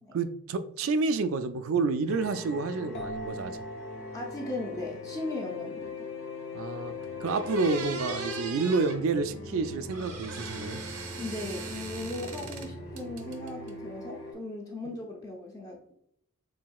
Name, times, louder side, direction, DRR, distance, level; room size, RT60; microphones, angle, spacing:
voice 1, 0.1-3.6 6.5-6.9 7.2-10.8, right 4 dB, 65° right, 11 dB, 0.3 m, -29 dB
sound 1, 2.1-14.3, left 3 dB, 65° left, 1.7 m, -40 dB
sound 2, 2.9-6.2, right 1 dB, 50° left, 1.3 m, -44 dB
voice 2, 4.1-5.9 11.2-15.9, left 2 dB, 15° left, 0 dB, 0.5 m, -38 dB
sound 3, 6.8-6.9 7.3-9.0 9.9-12.7 13.0-13.7, right 4 dB, 90° right, 0.8 m, -40 dB
7.1 x 2.7 x 2.3 m, 0.70 s
head